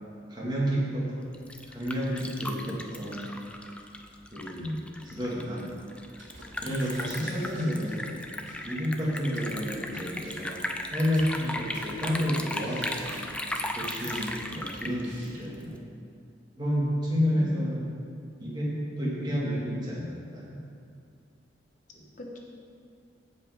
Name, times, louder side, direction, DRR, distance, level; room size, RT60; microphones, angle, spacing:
voice 1, 0.3-1.1 1.7-3.4 4.3-4.8 5.0-5.7 6.6-8.1 8.6-10.6 10.9-13.2 13.8-15.9 16.6-17.9 18.4-20.6 21.9-22.0, equal, 25° right, -6 dB, 2.1 m, -30 dB
Liquid, 1.2-15.8, left 1 dB, 5° left, 0.5 m, -37 dB
sound 1, 6.0-8.2 8.4-8.6 9.0-9.1 9.3-9.6 9.9-10.0 10.2-10.8 11.1-12.4 12.6-14.4 14.7-15.4, right 2 dB, 90° right, 2.7 m, -48 dB
voice 2, 17.3-17.8 22.2-22.4, left 1 dB, 45° left, -1 dB, 1.2 m, -40 dB
15.5 x 5.3 x 5.1 m, 2.4 s
head